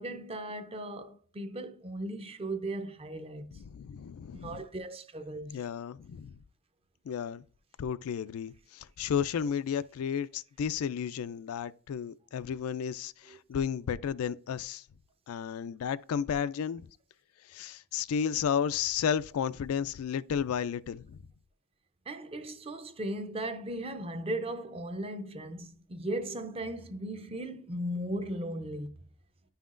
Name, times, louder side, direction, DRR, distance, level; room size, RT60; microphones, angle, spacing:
voice 1, 0.0-3.6 4.3-5.6 13.3-13.4 22.1-29.0, right 1 dB, 25° right, 0.6 m, -37 dB
voice 2, 3.6-4.6 5.5-6.3 7.1-7.4 7.8-14.8 15.3-16.9 17.5-21.2, left 7 dB, 75° left, 0.3 m, -33 dB
10.0 x 5.7 x 2.5 m
head